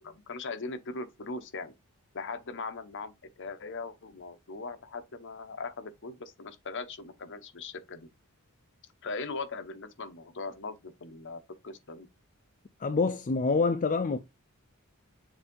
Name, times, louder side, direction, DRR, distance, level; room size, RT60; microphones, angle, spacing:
voice 1, 0.0-1.7 2.1-8.1 9.0-12.1, left 3 dB, 55° left, 0.9 m, -40 dB
voice 2, 12.8-14.2, left 4 dB, 35° left, 0.4 m, -26 dB
7.1 x 2.7 x 5.2 m
head